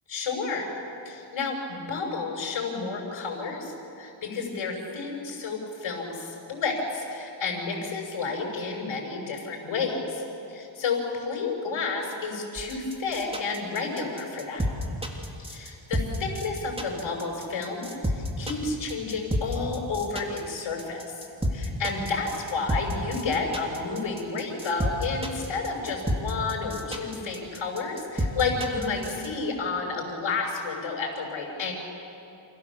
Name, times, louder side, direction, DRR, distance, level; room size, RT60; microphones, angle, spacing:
voice 1, 0.1-0.7 1.0-10.2 10.5-14.6 15.5-17.9 18.1-31.7, left 4 dB, 70° left, 0 dB, 5.8 m, -31 dB
sound 1, 12.5-29.3, equal, 10° right, 3.4 m, -30 dB
28.5 x 28.0 x 7.2 m, 2.8 s
cardioid pair, 100°, 48 cm